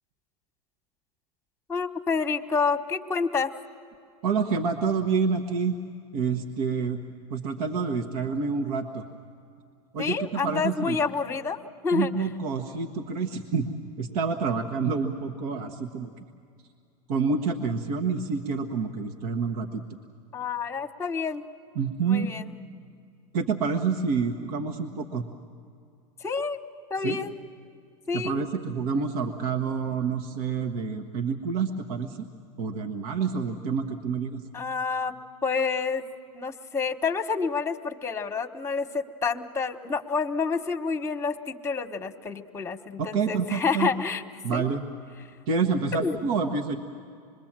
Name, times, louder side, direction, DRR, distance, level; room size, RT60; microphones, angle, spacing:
voice 1, 1.7-3.5 10.0-12.3 20.3-21.4 22.1-22.5 26.2-26.6 26.9-27.4 28.1-28.4 34.5-35.1 35.4-36.1 36.3-44.2 44.5-44.6 45.9-46.1, left 5 dB, 15° left, 8 dB, 1.2 m, -28 dB
voice 2, 4.2-5.7 6.1-7.0 7.3-9.0 9.9-11.0 11.9-13.7 14.0-16.1 17.1-19.8 21.7-22.3 23.3-25.2 27.0-27.2 28.1-32.2 32.6-34.4 43.0-43.9 44.4-44.8 45.5-46.8, right 5 dB, 70° right, 5 dB, 1.3 m, -28 dB
26.0 x 22.0 x 7.4 m, 2.4 s
hypercardioid pair, 110°, 20 cm